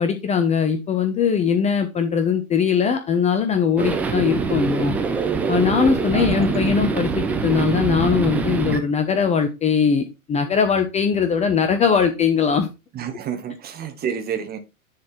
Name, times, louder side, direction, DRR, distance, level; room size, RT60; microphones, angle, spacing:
voice 1, 0.0-5.0 5.5-10.0 10.3-12.7, left 6 dB, 15° left, 0.8 m, -20 dB
sound 1, 3.8-8.8, right 5 dB, 5° right, 0.3 m, -24 dB
voice 2, 6.1-6.6 12.9-14.6, right 8 dB, 20° right, 1.5 m, -29 dB
10.5 x 4.3 x 4.4 m
figure-of-eight pair, 100°, 43 cm